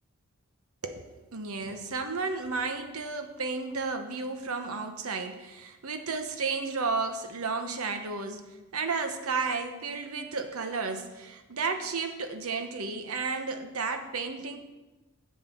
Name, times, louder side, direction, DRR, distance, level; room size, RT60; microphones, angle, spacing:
voice 1, 0.8-14.6, right 4 dB, 85° right, 7 dB, 0.9 m, -33 dB
7.7 x 7.3 x 5.6 m, 1.1 s
head